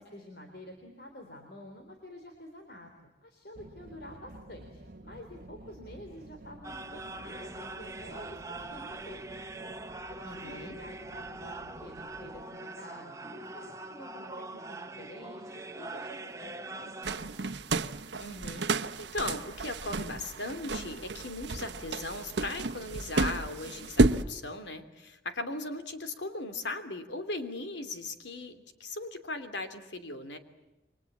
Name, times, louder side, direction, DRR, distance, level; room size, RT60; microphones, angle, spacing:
voice 1, 0.0-2.9 3.2-9.4 10.1-17.5, left 1 dB, 60° left, 3 dB, 3.9 m, -49 dB
sound 1, 3.5-12.4, right 2 dB, 50° right, 1.1 m, -51 dB
sound 2, 6.6-17.2, right 2 dB, 15° right, 1.0 m, -42 dB
voice 2, 10.2-10.8 18.2-30.4, left 2 dB, 90° left, 8 dB, 3.0 m, -38 dB
sound 3, 17.0-24.2, right 2 dB, 80° right, 1.0 m, -31 dB
29.5 x 24.5 x 7.3 m, 1.0 s
head